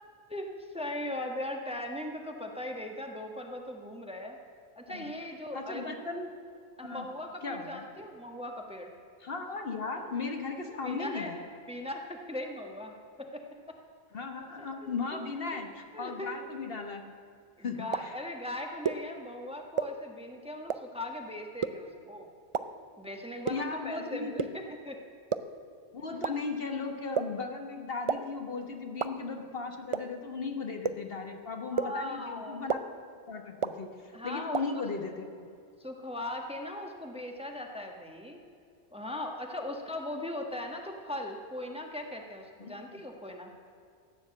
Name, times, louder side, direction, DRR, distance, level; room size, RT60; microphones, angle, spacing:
voice 1, 0.7-4.4 4.8-6.0 6.8-8.9 10.8-11.3 11.7-13.8 14.8-15.2 15.5-15.6 15.9-16.3 17.6-22.3 23.0-25.0 31.7-32.6 34.1-34.8 35.8-38.4 38.9-43.5, left 1 dB, 5° right, 2 dB, 1.2 m, -39 dB
voice 2, 5.5-6.3 6.8-7.1 7.4-7.8 9.2-11.4 14.1-17.1 17.6-18.1 23.5-24.5 25.9-32.8 33.3-35.3 42.6-43.0, left 4 dB, 55° left, 4 dB, 1.3 m, -37 dB
sound 1, 17.9-18.0 18.8-18.9 19.8-19.9 20.7-20.8 21.6-21.7 22.5-22.6 23.5-23.6 24.4-24.5 25.3-25.4 26.2-26.3 27.2-27.3 28.1-28.2 29.0-29.1 29.9-30.0 30.8-30.9 31.8-31.9 32.7-32.8 33.6-33.7 34.5-34.6, right 6 dB, 45° right, 0.4 m, -27 dB
14.5 x 9.8 x 7.6 m, 2.3 s
omnidirectional pair, 1.2 m